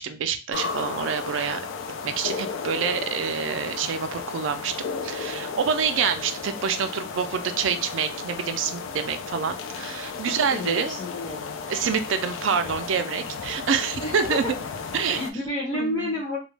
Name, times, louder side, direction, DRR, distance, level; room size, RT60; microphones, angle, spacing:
voice 1, 0.0-1.6 2.0-4.7 5.0-11.0 11.7-14.4 14.9-15.2 15.8-16.2, right 6 dB, 75° right, 9 dB, 0.4 m, -27 dB
sound 1, 0.5-15.3, left 5 dB, 75° left, 0.4 m, -34 dB
voice 2, 10.2-11.6 14.0-14.4 15.1-16.4, left 2 dB, 25° left, -6 dB, 0.6 m, -30 dB
2.3 x 2.1 x 3.1 m, 0.30 s
head